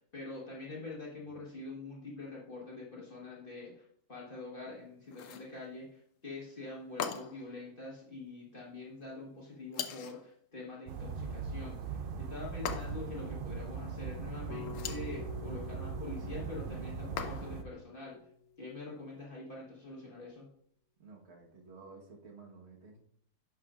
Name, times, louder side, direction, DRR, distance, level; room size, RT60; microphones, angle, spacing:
voice 1, 0.0-18.2 18.6-20.5, left 2 dB, 35° left, -4 dB, 1.5 m, -45 dB
sound 1, 5.1-5.5 7.0-7.5 9.7-10.2 12.7-13.2 14.6-15.1 17.2-17.7, left 7 dB, 65° left, 0.9 m, -40 dB
sound 2, 10.9-17.6, right 5 dB, 65° right, 0.5 m, -40 dB
sound 3, 14.5-18.8, left 9 dB, 85° left, 1.5 m, -49 dB
voice 2, 21.0-23.0, right 4 dB, 45° right, 0 dB, 1.6 m, -53 dB
10.5 x 6.0 x 2.5 m, 0.66 s
omnidirectional pair, 1.6 m